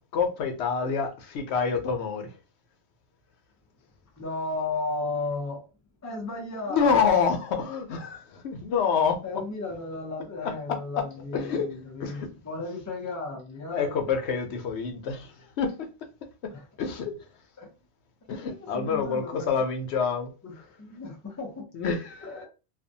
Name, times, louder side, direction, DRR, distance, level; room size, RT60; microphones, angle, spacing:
voice 1, 0.1-2.3 6.7-9.2 10.7-10.8 11.3-11.7 12.0-12.3 13.7-15.9 16.8-17.1 18.3-20.3 21.7-22.5, left 6 dB, 80° left, 0.9 m, -27 dB
voice 2, 4.2-5.7 6.0-7.2 9.2-13.9 16.5-16.7 17.6-17.7 18.2-19.5 20.4-21.7 22.2-22.5, left 3 dB, 20° left, 0.5 m, -35 dB
2.5 x 2.1 x 2.6 m
omnidirectional pair, 1.1 m